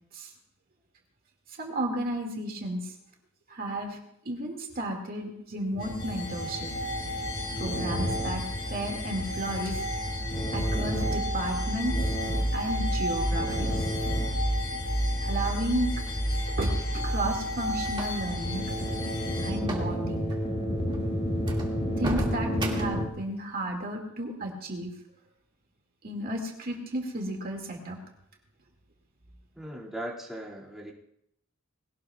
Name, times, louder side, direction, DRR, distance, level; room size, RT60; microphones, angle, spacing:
voice 1, 1.6-2.9 3.5-4.0 4.3-6.7 7.6-8.4 8.7-9.8 10.5-12.1 12.5-13.9 15.2-15.9 16.6-18.6 19.4-20.3 22.0-24.9 26.0-28.0, right 1 dB, 45° right, 1 dB, 2.2 m, -33 dB
sound 1, 5.7-23.1, equal, 30° left, 2.6 m, -33 dB
sound 2, 5.8-19.5, equal, 90° left, 4.3 m, -31 dB
sound 3, 17.0-18.4 19.6-19.9 20.2-20.4 20.9-21.0 21.4-23.1, right 1 dB, 20° right, 2.2 m, -35 dB
voice 2, 29.5-30.9, right 1 dB, ahead, -6 dB, 2.4 m, -38 dB
21.0 x 18.0 x 2.4 m, 0.74 s
head